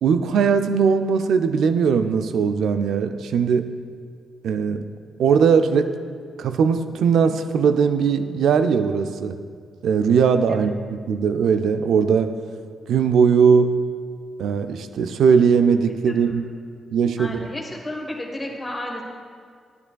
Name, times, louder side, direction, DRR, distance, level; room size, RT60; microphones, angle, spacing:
voice 1, 0.0-3.7 4.4-4.9 5.2-5.9 6.4-9.4 9.8-12.4 12.9-13.8 14.4-16.5 16.9-17.5, right 6 dB, 75° right, 9 dB, 0.4 m, -19 dB
voice 2, 17.2-19.0, left 1 dB, 20° left, 0 dB, 1.2 m, -32 dB
9.8 x 9.6 x 2.3 m, 2.1 s
hypercardioid pair, 40°, 0 cm